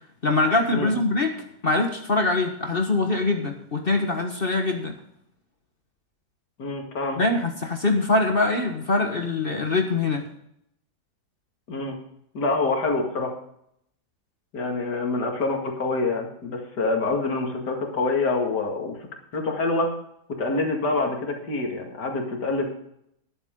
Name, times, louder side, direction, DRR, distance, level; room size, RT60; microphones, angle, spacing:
voice 1, 0.2-1.3 1.6-4.9 7.2-10.2, left 2 dB, 35° left, 3 dB, 1.5 m, -23 dB
voice 2, 6.6-7.2 11.7-12.0 12.3-13.3 14.5-19.0 19.3-19.9 20.3-22.8, left 3 dB, 80° left, 2 dB, 2.8 m, -26 dB
13.0 x 11.5 x 3.8 m, 0.74 s
omnidirectional pair, 1.8 m